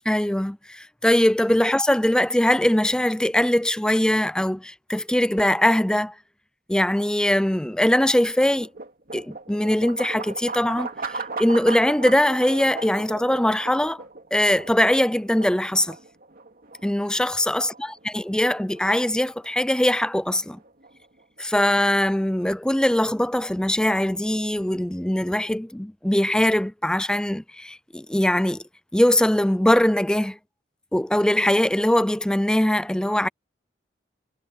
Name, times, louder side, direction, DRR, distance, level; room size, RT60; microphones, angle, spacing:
voice 1, 0.1-6.1 6.7-8.7 9.1-14.0 14.3-16.0 16.8-17.9 18.1-20.6 21.4-28.6 28.9-30.4 30.9-33.3, left 1 dB, 5° left, 0.4 m, -21 dB
sound 1, 7.5-21.6, right 4 dB, 50° right, 3.0 m, -38 dB
head